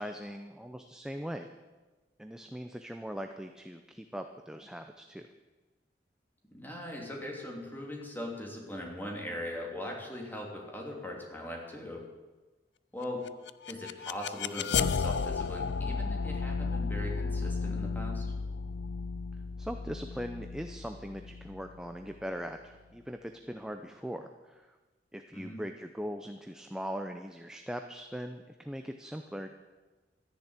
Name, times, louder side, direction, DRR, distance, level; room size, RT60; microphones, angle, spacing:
voice 1, 0.0-1.5 2.2-5.3 19.6-24.6 25.1-29.5, equal, 5° right, 5 dB, 0.7 m, -40 dB
voice 2, 6.5-12.0 12.9-13.2 13.7-18.3 25.3-25.6, left 1 dB, 10° left, -1 dB, 3.1 m, -40 dB
sound 1, 13.3-22.2, left 5 dB, 90° left, 0.5 m, -34 dB
13.5 x 10.5 x 8.3 m, 1.2 s
head